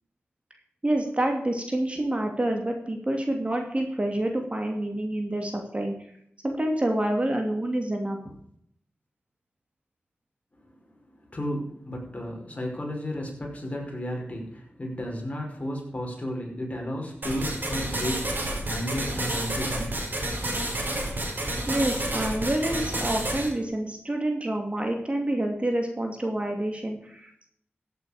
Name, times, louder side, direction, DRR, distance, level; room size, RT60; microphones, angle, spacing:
voice 1, 0.8-5.9 6.4-8.3 21.7-27.5, right 1 dB, 30° right, 3 dB, 2.8 m, -28 dB
voice 2, 11.2-19.9, equal, 35° left, 0 dB, 5.4 m, -33 dB
sound 1, 17.2-23.5, right 1 dB, 50° right, 4.7 m, -30 dB
15.0 x 8.7 x 5.1 m, 0.67 s
wide cardioid pair, 60°, 4 cm